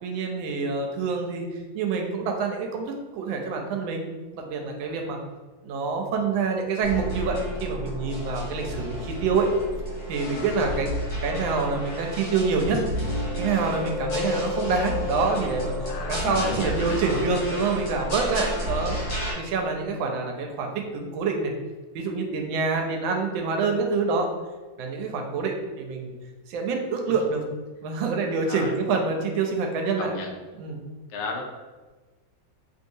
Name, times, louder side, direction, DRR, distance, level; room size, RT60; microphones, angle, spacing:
voice 1, 0.0-1.5 1.7-4.1 4.3-5.2 5.6-9.5 10.1-10.9 11.2-15.7 16.1-19.0 19.4-21.5 21.9-24.3 24.8-26.1 26.5-27.4 27.8-30.1 30.6-30.8, right 4 dB, 85° right, 2 dB, 1.3 m, -26 dB
sound 1, 6.8-19.3, left 1 dB, 50° left, 1.2 m, -31 dB
voice 2, 10.3-10.9 15.9-17.2 18.4-18.8 28.5-28.7 30.0-30.4 31.1-31.4, left 4 dB, 70° left, 0 dB, 0.8 m, -36 dB
3.2 x 2.7 x 2.6 m, 1.3 s
omnidirectional pair, 2.1 m